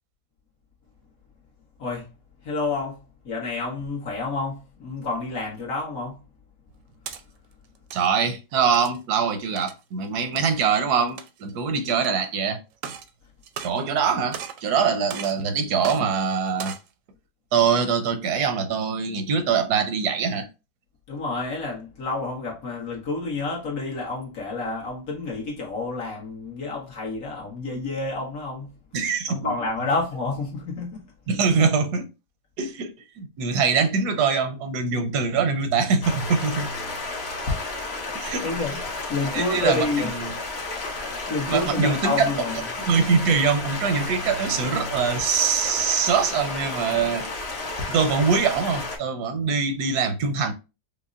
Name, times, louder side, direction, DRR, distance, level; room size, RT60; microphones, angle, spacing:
voice 1, 1.8-2.1 2.4-6.2 21.1-28.8 29.3-31.0 38.1-40.1 41.3-42.6, left 3 dB, 65° left, 1.7 m, -29 dB
sound 1, 6.7-7.2 7.7-8.1 8.7-9.0 9.6-9.8 10.4-10.5 11.1-11.5 12.0-12.1 12.7-13.1 13.4-14.0 14.3-14.7 15.1-15.4 15.8-16.0 16.5-16.9, right 8 dB, 70° right, 0.8 m, -37 dB
voice 2, 7.9-12.6 13.6-16.8 17.5-20.5 28.9-29.5 31.3-32.1 32.6-36.7 38.1-38.5 39.3-40.3 41.5-42.3 42.9-47.3 47.9-50.5, right 6 dB, 85° right, 1.2 m, -23 dB
Stream, 36.0-49.0, left 3 dB, 50° left, 1.0 m, -32 dB
5.0 x 2.1 x 2.4 m
omnidirectional pair, 1.6 m